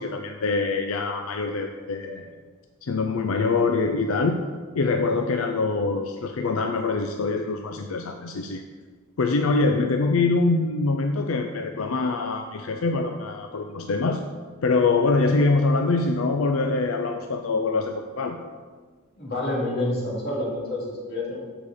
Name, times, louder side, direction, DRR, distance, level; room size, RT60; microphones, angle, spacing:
voice 1, 0.0-2.2 2.8-4.4 4.7-8.6 9.2-14.2 14.6-18.4, left 3 dB, 85° left, 5 dB, 0.5 m, -24 dB
voice 2, 19.2-21.4, left 1 dB, 50° left, -4 dB, 2.5 m, -28 dB
7.4 x 5.0 x 6.6 m, 1.5 s
head